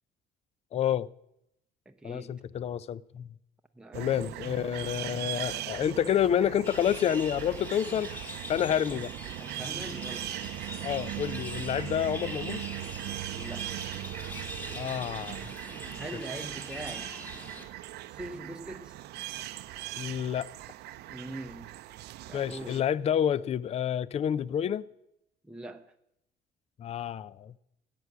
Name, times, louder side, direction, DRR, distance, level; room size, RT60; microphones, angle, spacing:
voice 1, 0.7-1.1 2.0-3.3 3.9-9.1 10.8-12.7 14.7-15.5 20.0-20.5 22.3-24.9 26.8-27.6, left 9 dB, 40° left, 0.4 m, -29 dB
voice 2, 1.9-2.4 3.7-5.2 9.4-10.4 13.3-13.8 16.0-17.1 18.1-19.0 21.1-21.7 22.3-22.8 25.4-25.9, right 1 dB, 5° right, 0.7 m, -43 dB
sound 1, 3.9-22.8, right 15 dB, 75° right, 0.6 m, -39 dB
sound 2, 6.6-17.6, equal, 10° left, 1.9 m, -43 dB
16.0 x 8.4 x 6.0 m
cardioid pair, 110°, 17 cm